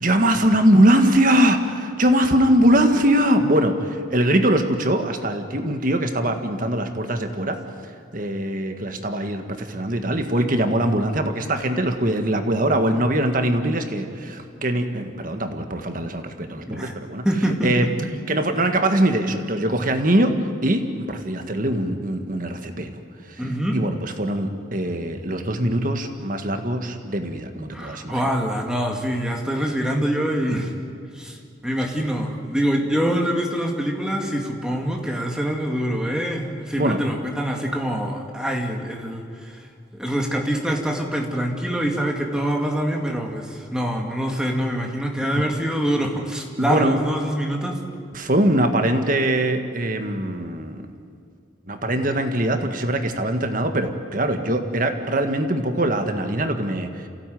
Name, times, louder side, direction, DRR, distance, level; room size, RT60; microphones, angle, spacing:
voice 1, 0.0-7.6 8.1-17.3 17.6-17.9 18.3-20.4 20.6-23.0 23.3-23.4 23.7-28.2 36.8-37.0 46.6-47.0 48.1-50.9 51.7-57.1, right 1 dB, 45° right, 6 dB, 1.7 m, -22 dB
voice 2, 17.2-17.9 23.4-23.8 27.7-30.7 31.1-31.4 31.6-39.6 39.9-47.8, equal, 5° right, 1 dB, 2.3 m, -25 dB
28.0 x 16.5 x 9.4 m, 2.4 s
head